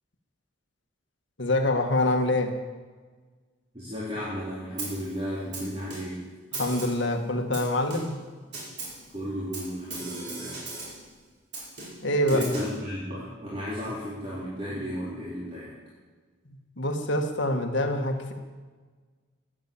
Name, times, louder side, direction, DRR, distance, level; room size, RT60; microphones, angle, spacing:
voice 1, 1.4-2.5 6.5-8.2 12.0-12.4 16.8-18.3, left 1 dB, 60° left, 4 dB, 1.8 m, -25 dB
voice 2, 3.7-6.3 9.1-10.6 12.3-15.7, equal, 30° right, -8 dB, 3.6 m, -34 dB
Snare drum, 4.8-5.1 5.5-6.2 6.5-7.1 7.5-8.2 8.5-9.1 9.5-11.1 11.5-12.8, right 3 dB, 55° right, 5.3 m, -38 dB
14.5 x 10.0 x 8.7 m, 1.4 s
head